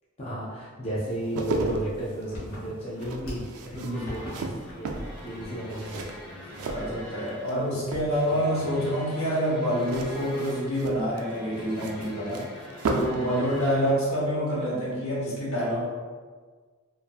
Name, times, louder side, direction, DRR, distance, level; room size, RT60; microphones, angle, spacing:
voice 1, 0.2-6.7 8.2-8.4, right 1 dB, 25° left, -8 dB, 0.4 m, -34 dB
sound 1, 1.1-7.5 7.8-8.5 9.8-13.3 13.5-13.7, right 3 dB, 85° right, 0.3 m, -34 dB
sound 2, 1.6-3.6 3.9-4.4 4.6-5.1 5.4-5.6 6.0-6.1 6.8-7.2, equal, 85° left, 1.0 m, -41 dB
sound 3, 3.9-13.9, equal, 10° left, 1.0 m, -44 dB
voice 2, 6.6-12.4 12.9-15.9, equal, 70° left, -6 dB, 0.9 m, -27 dB
2.5 x 2.5 x 2.3 m, 1.5 s
head